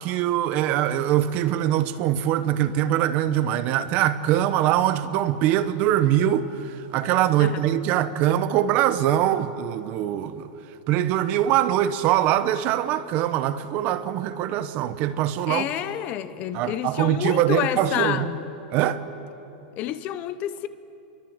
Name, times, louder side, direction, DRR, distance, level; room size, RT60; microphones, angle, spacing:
voice 1, 0.0-10.5 10.9-15.7 16.5-18.3 18.7-19.0, right 12 dB, 35° right, 1.1 m, -23 dB
voice 2, 15.5-18.4 19.8-20.7, left 12 dB, 30° left, 0.9 m, -29 dB
29.0 x 23.0 x 8.1 m
supercardioid pair, 160°, 5 cm